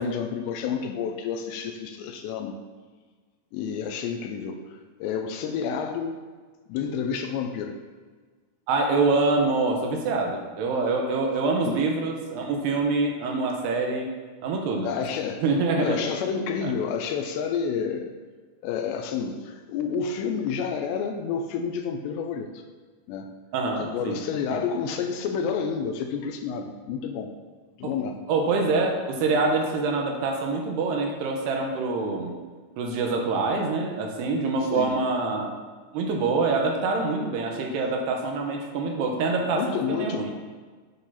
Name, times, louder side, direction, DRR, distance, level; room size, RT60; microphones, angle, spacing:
voice 1, 0.0-2.6 3.5-4.6 5.0-6.2 6.7-7.8 11.6-11.8 14.8-15.5 15.8-18.1 18.6-22.6 23.1-23.3 23.7-27.3 27.8-28.2 34.7-35.0 39.5-40.3, left 6 dB, 85° left, 5 dB, 2.8 m, -29 dB
voice 2, 8.7-14.1 14.4-14.9 15.4-16.0 16.6-16.7 23.5-24.2 24.5-24.6 27.8-27.9 28.3-32.3 32.8-35.5 35.9-40.3, right 3 dB, 70° right, 1 dB, 3.0 m, -25 dB
9.6 x 6.7 x 5.7 m, 1.4 s
omnidirectional pair, 5.2 m